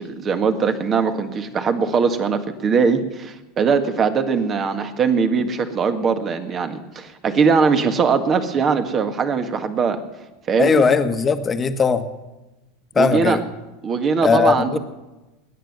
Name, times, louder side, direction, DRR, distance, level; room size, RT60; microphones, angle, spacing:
voice 1, 0.0-10.0 10.5-10.8 12.9-13.4 13.8-14.8, right 5 dB, 35° right, 8 dB, 1.8 m, -20 dB
voice 2, 10.6-12.1 12.9-13.4 14.2-14.8, left 5 dB, 25° left, 9 dB, 1.4 m, -18 dB
20.5 x 9.4 x 6.8 m, 1.1 s
hypercardioid pair, 90°, 0 cm